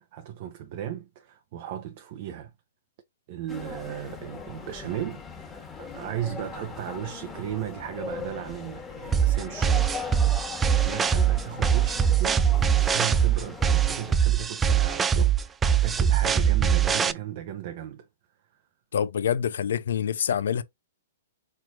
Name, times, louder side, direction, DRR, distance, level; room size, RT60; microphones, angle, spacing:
voice 1, 0.0-2.5 3.3-5.2 5.8-9.9 10.8-18.1, right 11 dB, 50° right, 0.7 m, -36 dB
sound 1, 3.5-14.1, left 5 dB, 15° left, 1.5 m, -39 dB
sound 2, 9.1-17.1, right 8 dB, 15° right, 0.4 m, -22 dB
voice 2, 18.9-20.6, left 8 dB, 70° left, 0.5 m, -26 dB
4.5 x 4.4 x 2.4 m
hypercardioid pair, 120°, 0 cm